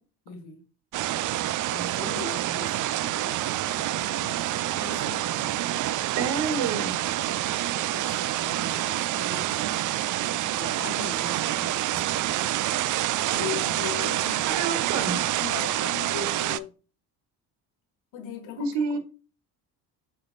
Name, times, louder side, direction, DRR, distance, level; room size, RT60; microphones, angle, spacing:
voice 1, 0.3-0.6 1.7-3.5 3.8-5.7 7.2-9.7 10.5-12.5 13.3-14.9 15.4-16.7 18.1-19.0, left 7 dB, 65° left, 1.5 m, -40 dB
sound 1, 0.9-16.6, right 14 dB, 40° right, 0.4 m, -27 dB
voice 2, 6.2-7.0 14.4-15.2 18.6-19.0, right 5 dB, 55° right, 1.5 m, -28 dB
7.9 x 3.4 x 3.9 m
hypercardioid pair, 55°, 50 cm